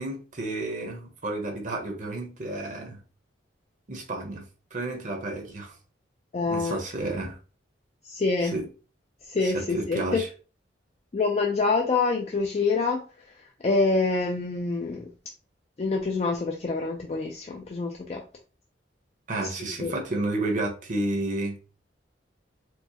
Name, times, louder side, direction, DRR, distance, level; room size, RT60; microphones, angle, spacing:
voice 1, 0.0-3.0 3.9-4.4 4.7-5.7 6.5-7.4 8.5-8.7 9.4-10.2 19.3-21.6, right 2 dB, 45° right, 0.8 m, -31 dB
voice 2, 6.3-6.8 8.0-8.6 9.2-10.2 11.1-13.0 13.3-15.1 15.8-18.2 19.4-20.0, left 3 dB, 35° left, 0.4 m, -26 dB
4.4 x 2.1 x 2.8 m
head